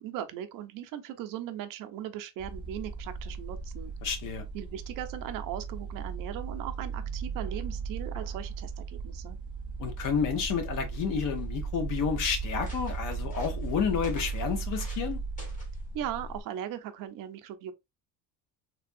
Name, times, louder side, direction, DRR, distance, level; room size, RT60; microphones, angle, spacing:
voice 1, 0.0-3.9 4.5-9.4 15.9-17.7, right 10 dB, 60° right, 0.6 m, -38 dB
sound 1, 2.4-16.4, right 5 dB, 15° right, 0.6 m, -36 dB
voice 2, 4.0-4.4 9.8-15.2, left 7 dB, 55° left, 0.9 m, -30 dB
sound 2, 10.8-11.4 12.0-12.1 12.4-15.1 15.4-15.8 16.6-16.8, left 1 dB, 20° left, 1.0 m, -51 dB
3.3 x 2.2 x 2.5 m
cardioid pair, 170°, 37 cm